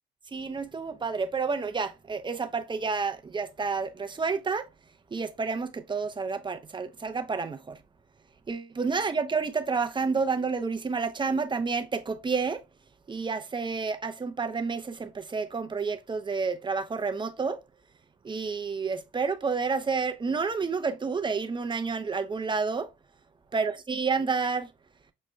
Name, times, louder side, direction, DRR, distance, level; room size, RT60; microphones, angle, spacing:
voice 1, 0.3-4.7 5.1-7.8 8.5-12.6 13.1-17.6 18.2-22.9 23.5-24.7, right 4 dB, 25° right, 0.6 m, -30 dB
6.4 x 2.2 x 3.1 m
cardioid pair, 90°, 20 cm